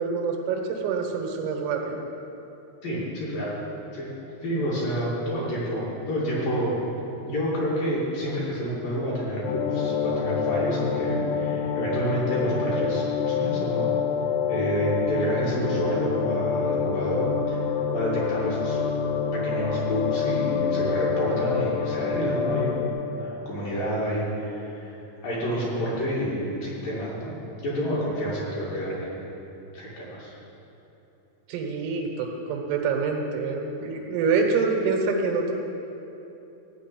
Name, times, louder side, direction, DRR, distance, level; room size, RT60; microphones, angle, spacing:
voice 1, 0.0-2.0 31.5-35.5, right 4 dB, 85° right, 2 dB, 4.0 m, -26 dB
voice 2, 2.8-3.6 3.9-4.1 4.4-6.8 7.2-13.9 14.5-17.6 17.9-18.8 19.3-22.7 23.1-24.9 25.2-27.3 27.6-29.2 29.7-30.3, equal, 50° left, -7 dB, 3.3 m, -29 dB
sound 1, 9.4-22.9, left 6 dB, 85° left, 2.2 m, -27 dB
15.5 x 5.2 x 9.2 m, 3.0 s
omnidirectional pair, 5.8 m